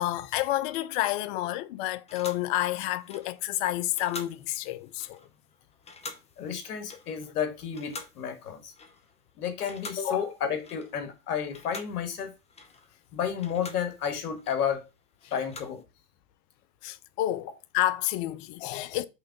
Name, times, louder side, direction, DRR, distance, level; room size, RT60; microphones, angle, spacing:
voice 1, 0.0-5.2 10.1-10.2 16.8-17.5 17.7-19.0, left 15 dB, 45° left, 0.7 m, -29 dB
sound 1, 2.1-9.3 9.6-11.2 11.5-15.8, left 3 dB, 15° left, 0.9 m, -47 dB
voice 2, 6.4-8.7 9.4-12.3 13.1-14.8 15.3-15.8, left 8 dB, 70° left, 1.7 m, -31 dB
5.7 x 3.7 x 5.7 m
hypercardioid pair, 115°, 47 cm